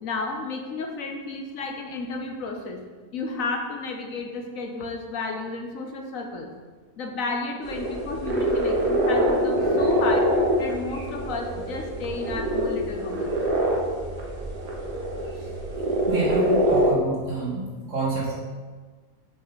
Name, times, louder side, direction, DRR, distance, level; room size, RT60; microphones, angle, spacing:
voice 1, 0.0-2.8 3.1-6.5 7.0-10.3 10.6-13.4, left 3 dB, 65° left, 3 dB, 1.1 m, -32 dB
sound 1, 7.6-16.9, equal, 70° right, 1.7 m, -24 dB
voice 2, 16.1-18.4, right 3 dB, 50° right, -6 dB, 2.1 m, -28 dB
6.5 x 5.5 x 4.0 m, 1.4 s
omnidirectional pair, 1.7 m